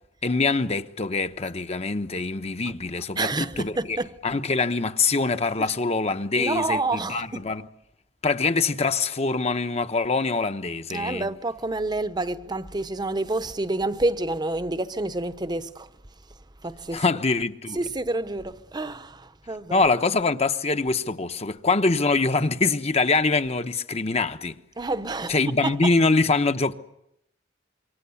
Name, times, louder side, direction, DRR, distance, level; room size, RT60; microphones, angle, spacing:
voice 1, 0.2-4.0 4.2-7.6 8.2-11.3 16.9-17.8 19.7-24.6 25.3-26.7, left 3 dB, 35° left, 1.0 m, -24 dB
voice 2, 3.1-4.1 6.4-7.4 10.9-15.9 16.6-17.0 17.7-19.8 24.8-25.7, right 2 dB, 25° right, 0.9 m, -28 dB
26.5 x 24.5 x 7.2 m
head